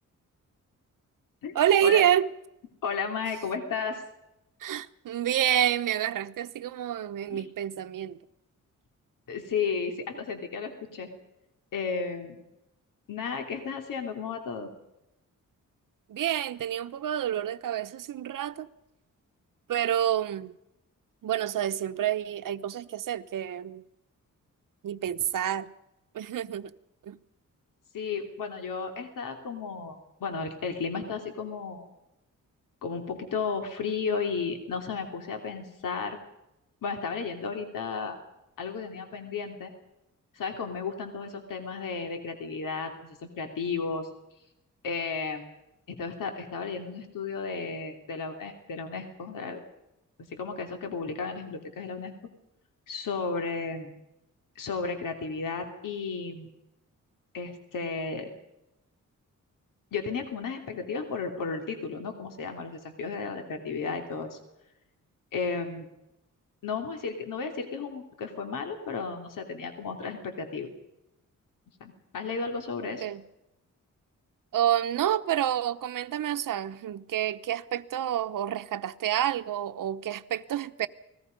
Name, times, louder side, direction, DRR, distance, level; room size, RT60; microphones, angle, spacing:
voice 1, 1.5-2.3 4.6-8.2 16.1-18.7 19.7-20.5 21.2-23.8 24.8-25.7 26.1-26.7 27.0-27.2 73.0-73.2 74.5-80.9, right 10 dB, 85° right, 1.1 m, -28 dB
voice 2, 2.8-4.0 7.3-7.4 9.3-11.1 11.7-12.4 13.1-14.7 27.9-29.9 30.2-31.9 32.8-36.2 36.8-38.2 38.6-39.7 40.3-44.1 44.8-45.5 45.9-49.6 50.3-52.1 52.9-53.9 54.5-56.5 57.3-58.3 59.9-64.4 65.3-65.9 66.6-70.7 71.8-73.0, left 5 dB, 85° left, 3.2 m, -33 dB
29.0 x 20.5 x 5.4 m
wide cardioid pair, 155°, 32 cm